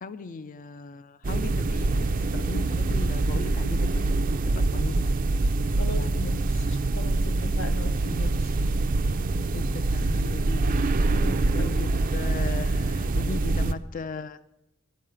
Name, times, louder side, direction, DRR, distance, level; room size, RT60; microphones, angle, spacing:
voice 1, 0.0-2.1 2.3-5.2 6.0-6.1 9.5-10.8 11.5-14.4, left 4 dB, 40° left, 13 dB, 0.5 m, -37 dB
sound 1, 1.2-13.7, right 2 dB, 45° right, 0.5 m, -25 dB
voice 2, 5.8-8.5 11.1-11.7, left 2 dB, 75° left, 7 dB, 1.2 m, -38 dB
12.5 x 5.6 x 8.6 m, 0.88 s
head